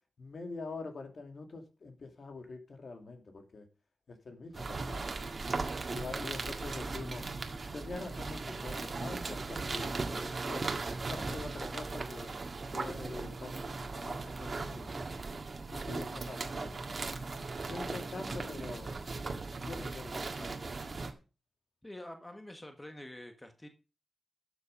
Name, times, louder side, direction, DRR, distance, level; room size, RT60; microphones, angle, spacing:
voice 1, 0.2-3.7 4.1-5.0 5.9-7.2 7.7-12.3 12.7-14.9 15.7-17.0 17.7-19.0 19.6-21.1, left 3 dB, 50° left, 5 dB, 2.4 m, -45 dB
sound 1, 4.5-21.1, right 3 dB, 40° right, 1.8 m, -38 dB
voice 2, 21.8-23.7, left 1 dB, 10° left, 6 dB, 1.4 m, -47 dB
12.5 x 7.0 x 5.2 m, 0.33 s
wide cardioid pair, 95°, 0 cm